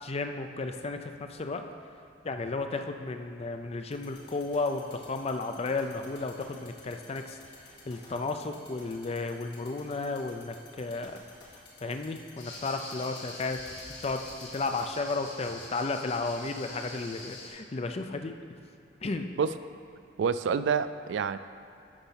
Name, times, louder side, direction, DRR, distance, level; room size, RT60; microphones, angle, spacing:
voice 1, 0.0-1.6 2.2-7.4 7.9-11.2 11.8-18.3 19.0-19.3, left 3 dB, 35° left, 6 dB, 0.5 m, -33 dB
sound 1, 3.9-14.8, left 5 dB, 65° left, 2.0 m, -53 dB
sound 2, 12.4-17.5, left 2 dB, 85° left, 2.2 m, -45 dB
voice 2, 20.2-21.4, right 6 dB, 75° right, 13 dB, 0.3 m, -27 dB
11.5 x 4.0 x 5.7 m, 2.7 s
head